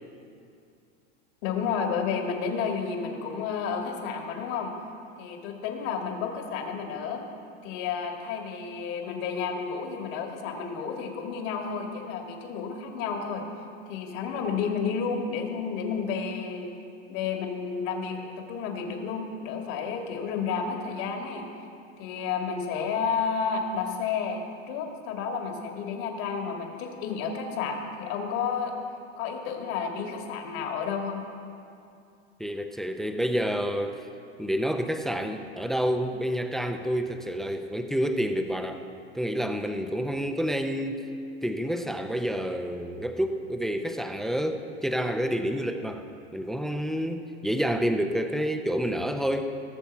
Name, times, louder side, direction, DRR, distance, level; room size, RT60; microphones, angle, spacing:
voice 1, 1.4-4.7 5.2-7.2 7.6-13.4 13.9-16.7 17.1-21.5 22.0-28.7 29.2-31.2, left 6 dB, 55° left, 3 dB, 1.9 m, -31 dB
voice 2, 32.4-34.1 34.4-38.8 39.1-41.0 41.4-46.0 46.3-49.5, equal, ahead, 6 dB, 0.4 m, -28 dB
18.0 x 6.8 x 4.4 m, 2.5 s
hypercardioid pair, 115°, 34 cm